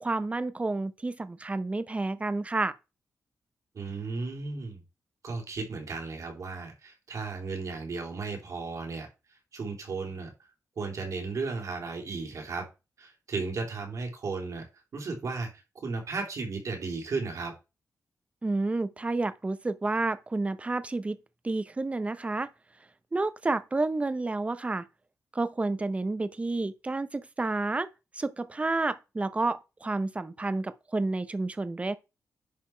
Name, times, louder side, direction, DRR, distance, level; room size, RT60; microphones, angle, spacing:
voice 1, 0.0-2.7 18.4-21.2 21.4-22.5 23.1-24.8 25.3-27.9 28.2-32.0, right 2 dB, 20° right, 0.7 m, -30 dB
voice 2, 3.7-4.8 5.2-9.1 9.5-10.3 10.8-12.7 13.0-14.6 14.9-17.5, right 4 dB, 65° right, 3.2 m, -35 dB
10.5 x 4.0 x 4.5 m
wide cardioid pair, 115°, 6 cm